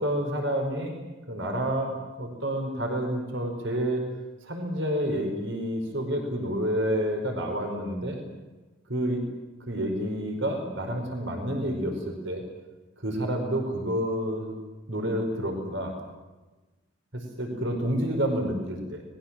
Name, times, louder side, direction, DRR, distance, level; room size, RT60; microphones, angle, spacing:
voice 1, 0.0-4.0 4.4-8.2 8.9-9.2 9.7-12.4 13.0-14.5 14.9-15.9 17.1-19.0, equal, 60° right, 4 dB, 4.8 m, -29 dB
29.5 x 20.5 x 7.5 m, 1.2 s
head